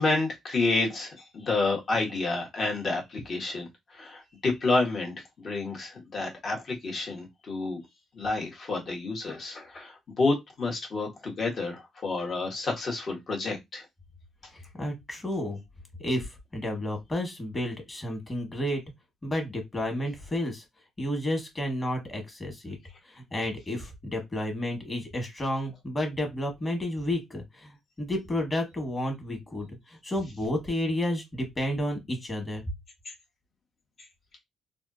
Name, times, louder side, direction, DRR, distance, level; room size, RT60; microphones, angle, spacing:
voice 1, 0.0-7.8 8.1-13.8 33.0-33.1, left 3 dB, 50° left, 1.4 m, -29 dB
voice 2, 14.8-15.6 16.0-18.8 19.2-20.6 21.0-22.8 23.3-27.7 28.0-32.6, left 1 dB, 25° left, 1.6 m, -31 dB
3.4 x 2.4 x 2.7 m
cardioid pair, 90°, 0 cm